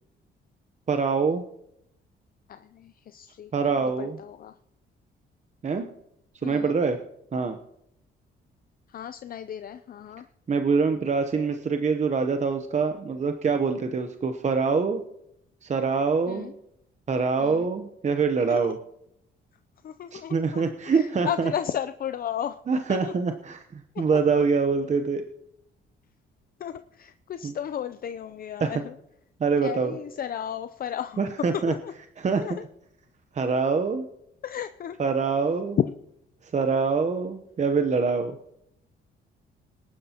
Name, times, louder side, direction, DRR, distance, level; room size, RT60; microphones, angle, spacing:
voice 1, 0.9-1.4 3.5-4.2 5.6-5.9 6.4-7.0 7.3-7.6 10.5-15.0 15.6-16.5 17.1-18.8 20.1-21.5 22.7-25.2 27.4-27.5 28.6-28.7 29.4-29.9 31.2-31.7 32.2-32.4 33.3-34.1 35.0-35.8 36.4-38.4, right 5 dB, 35° right, 7 dB, 0.9 m, -25 dB
voice 2, 2.5-4.6 6.4-6.8 8.9-10.3 16.3-16.5 17.4-17.7 18.4-18.8 19.8-22.6 22.9-23.1 23.9-24.4 26.6-29.0 29.6-31.3 31.7-31.9 32.4-32.7 34.4-35.0 35.8-36.0, left 9 dB, 45° left, 10 dB, 0.5 m, -34 dB
20.5 x 11.0 x 2.9 m, 0.78 s
cardioid pair, 90°, 20 cm